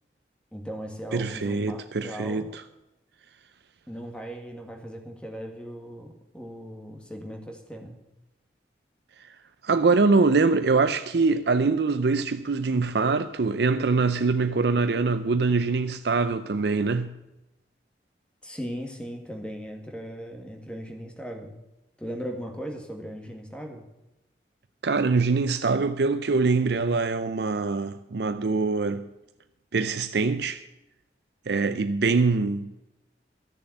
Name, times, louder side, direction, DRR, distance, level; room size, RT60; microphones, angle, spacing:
voice 1, 0.5-2.5 3.9-8.0 18.4-21.5 22.0-23.9, equal, 5° left, 1.8 m, -38 dB
voice 2, 1.1-2.6 9.2-9.3 9.6-17.2 24.8-29.1 29.7-30.6 31.5-32.7, right 4 dB, 70° right, 0.5 m, -24 dB
13.0 x 6.9 x 7.9 m
head